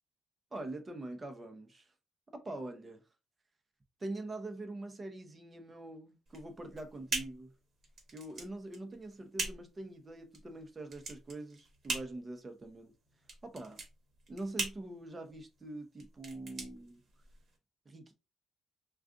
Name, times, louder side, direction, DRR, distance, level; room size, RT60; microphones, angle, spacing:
voice 1, 0.5-1.9 2.3-3.0 4.0-7.5 8.1-12.9 13.4-13.8 14.3-17.0 17.9-18.1, right 2 dB, 30° right, 0.8 m, -44 dB
sound 1, 6.3-17.6, right 3 dB, 50° right, 1.2 m, -42 dB
2.4 x 2.4 x 3.6 m
cardioid pair, 90°, 0 cm